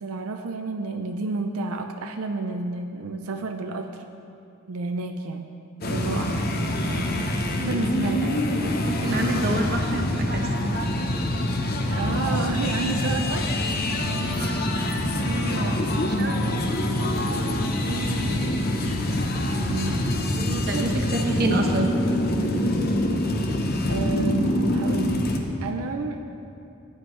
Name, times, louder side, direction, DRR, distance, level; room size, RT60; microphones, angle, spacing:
voice 1, 0.0-4.0 4.7-5.5 5.8-8.4 11.9-13.5 15.2-15.9 17.5-18.6 19.6-20.3 20.7-20.9 23.9-25.3 25.6-26.2, right 3 dB, 85° right, 5 dB, 0.5 m, -31 dB
sound 1, 5.8-25.4, left 1 dB, 45° left, 0.8 m, -25 dB
voice 2, 8.9-10.5 14.4-14.7 16.0-16.4 20.4-21.9, right 1 dB, 45° right, 2 dB, 1.1 m, -28 dB
16.0 x 9.6 x 3.2 m, 2.6 s
head